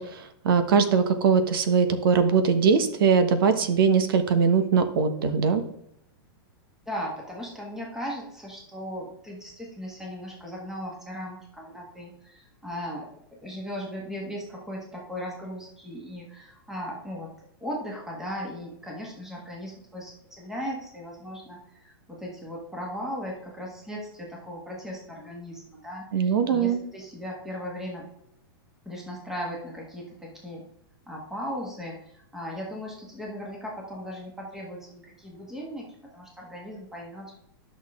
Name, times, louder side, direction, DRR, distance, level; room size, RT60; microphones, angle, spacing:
voice 1, 0.0-5.6 26.1-26.8, right 6 dB, 60° right, 9 dB, 1.2 m, -21 dB
voice 2, 6.9-13.1 13.4-17.3 17.6-28.1 28.9-30.6 31.1-37.3, equal, 5° right, -2 dB, 1.6 m, -37 dB
11.0 x 6.5 x 3.7 m, 0.77 s
supercardioid pair, 170°, 13 cm